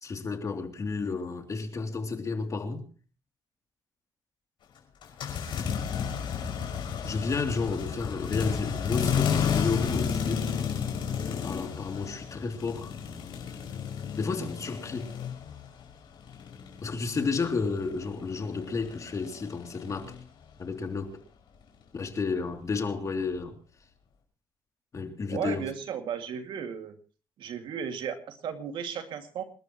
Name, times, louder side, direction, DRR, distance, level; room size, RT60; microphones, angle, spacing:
voice 1, 0.0-2.8 7.0-10.5 11.4-12.9 14.1-15.1 16.8-20.1 20.6-21.2 21.9-23.6 24.9-25.7, left 4 dB, 40° left, 3.0 m, -32 dB
sound 1, 5.0-15.8 16.1-20.2, left 7 dB, 70° left, 6.0 m, -32 dB
voice 2, 25.3-26.9 27.4-29.4, right 8 dB, 75° right, 2.3 m, -35 dB
28.0 x 12.5 x 3.1 m
cardioid pair, 95°, 9 cm